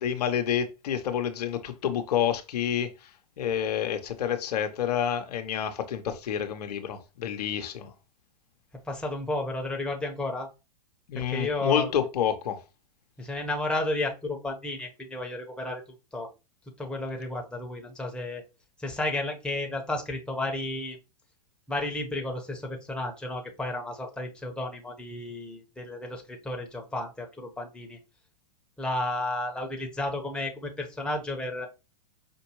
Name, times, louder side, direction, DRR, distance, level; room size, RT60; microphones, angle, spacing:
voice 1, 0.0-2.9 3.4-7.9 11.1-12.6, left 9 dB, 70° left, 0.8 m, -28 dB
voice 2, 8.9-10.5 11.1-11.9 13.2-15.8 16.1-16.3 16.8-18.4 18.8-21.0 21.7-28.0 28.8-31.7, left 2 dB, 5° left, 1.0 m, -32 dB
5.1 x 2.6 x 3.0 m
hypercardioid pair, 110°, 21 cm